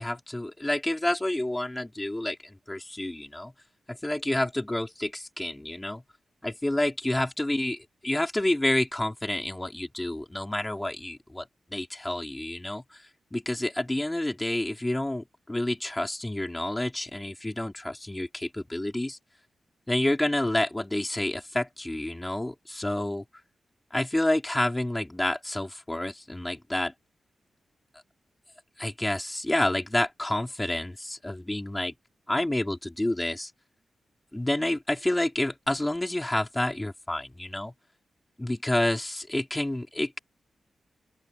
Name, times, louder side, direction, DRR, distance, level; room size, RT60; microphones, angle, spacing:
voice 1, 0.0-3.5 3.9-6.0 6.4-13.0 13.3-19.2 19.9-23.2 23.9-26.9 28.8-31.9 32.3-33.5 34.3-37.7 38.4-40.2, left 1 dB, 10° left, 4.3 m, -29 dB
open air
wide cardioid pair, 115°, 0 cm